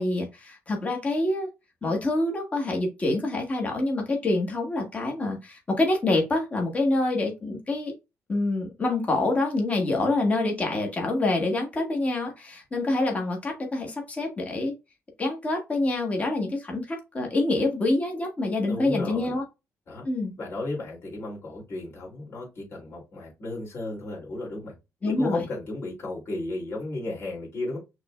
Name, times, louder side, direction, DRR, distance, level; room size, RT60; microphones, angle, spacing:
voice 1, 0.0-1.5 1.8-7.9 8.3-14.7 15.2-19.4 20.0-20.3 25.0-25.5, left 2 dB, 25° left, 1.5 m, -26 dB
voice 2, 18.6-19.4 19.9-20.0 20.4-24.7 25.0-27.8, left 2 dB, 45° left, 3.0 m, -34 dB
6.1 x 3.3 x 2.4 m
cardioid pair, 135°, 6 cm